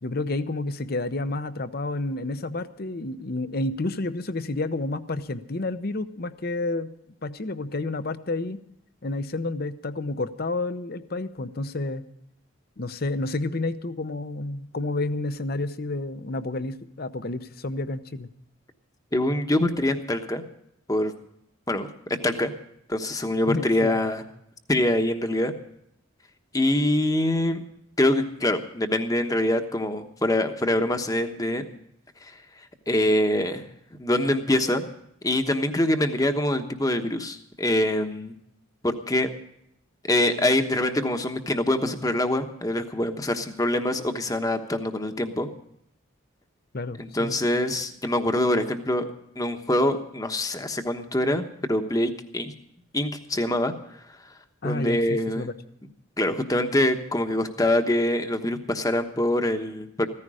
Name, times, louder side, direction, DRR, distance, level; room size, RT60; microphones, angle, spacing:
voice 1, 0.0-6.9 7.2-8.6 9.0-12.0 12.8-18.3 23.5-23.9 46.7-47.4 54.6-55.5, left 2 dB, 45° left, 12 dB, 0.8 m, -30 dB
voice 2, 19.1-20.4 20.9-21.1 21.7-21.9 22.2-22.5 22.9-24.2 24.7-25.5 26.5-27.6 28.0-31.7 32.2-33.7 34.0-34.8 35.2-38.3 38.8-39.3 40.1-45.5 47.0-49.1 49.4-52.5 52.9-53.7 54.1-54.3 54.6-55.5 56.2-60.1, left 1 dB, 15° left, 7 dB, 1.1 m, -24 dB
15.5 x 14.5 x 4.9 m, 0.75 s
head